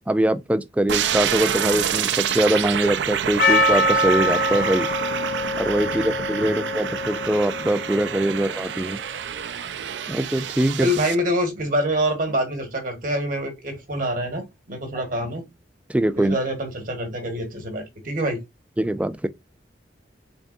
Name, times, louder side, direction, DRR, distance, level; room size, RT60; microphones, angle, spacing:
voice 1, 0.1-4.9 5.6-9.0 10.1-10.9 15.9-16.4 18.8-19.3, right 1 dB, 10° right, 0.3 m, -22 dB
sound 1, 0.9-11.1, right 8 dB, 80° right, 0.4 m, -27 dB
Percussion, 3.4-8.3, left 1 dB, 55° left, 0.7 m, -24 dB
voice 2, 10.8-15.5 16.2-18.4, equal, 50° right, 1.4 m, -26 dB
4.0 x 3.4 x 2.5 m
head